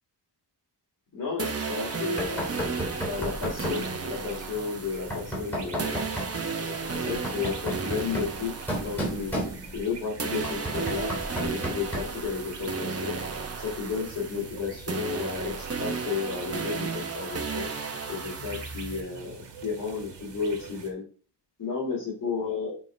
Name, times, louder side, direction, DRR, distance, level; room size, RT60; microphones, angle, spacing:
voice 1, 1.1-2.4 3.0-8.5 8.8-9.3 9.7-11.1 11.4-13.2 13.6-16.9 17.1-17.7 18.1-19.3 19.6-21.0 21.6-22.7, left 5 dB, 45° left, -5 dB, 2.7 m, -33 dB
sound 1, 1.4-9.9 10.2-19.0, right 4 dB, 35° right, 0.9 m, -34 dB
sound 2, 1.8-20.9, right 4 dB, 75° right, 1.5 m, -45 dB
Knock, 2.2-3.9 5.1-6.4 7.0-9.9 10.4-12.2, equal, 5° left, 3.1 m, -33 dB
7.4 x 3.7 x 5.0 m, 0.39 s
wide cardioid pair, 155°, 43 cm